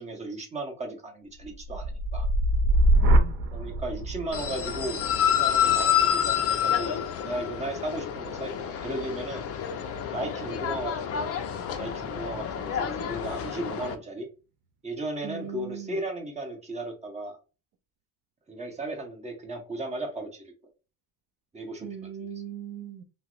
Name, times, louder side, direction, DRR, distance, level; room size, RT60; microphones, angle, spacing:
voice 1, 0.0-2.3 3.5-9.4 10.1-11.4 11.7-14.3 14.8-17.4 18.5-20.4 21.5-22.1, right 2 dB, 15° right, 1.0 m, -36 dB
sound 1, 1.4-9.5 9.9-10.4, right 1 dB, 80° right, 0.8 m, -27 dB
voice 2, 3.0-3.4 15.2-16.0 21.8-23.0, right 8 dB, 50° right, 0.5 m, -39 dB
sound 2, 4.3-13.9, left 9 dB, 35° left, 0.4 m, -28 dB
2.7 x 2.0 x 3.7 m
cardioid pair, 115°, 41 cm